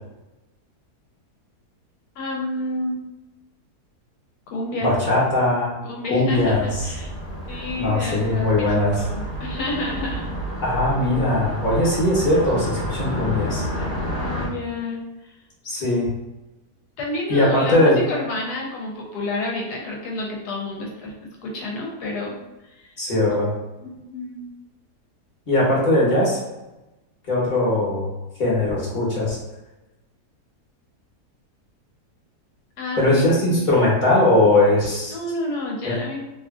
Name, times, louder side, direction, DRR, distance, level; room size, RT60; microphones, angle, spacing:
voice 1, 2.2-3.0 4.5-4.9 5.8-7.1 7.5-8.6 9.0-10.3 13.7-15.3 17.0-22.4 22.6-22.9 23.8-24.4 32.8-33.6 35.1-36.2, left 2 dB, 75° left, -1 dB, 1.2 m, -30 dB
voice 2, 4.8-5.8 6.1-6.9 7.8-9.0 10.6-13.7 15.6-16.1 17.3-18.0 23.0-23.5 25.5-26.4 27.3-28.1 28.4-29.4 33.0-35.2 35.8-36.0, left 1 dB, 35° left, -6 dB, 0.9 m, -20 dB
Car passing by, 6.3-14.5, equal, 50° left, 1.2 m, -30 dB
3.0 x 2.4 x 2.4 m, 1.0 s
omnidirectional pair, 1.7 m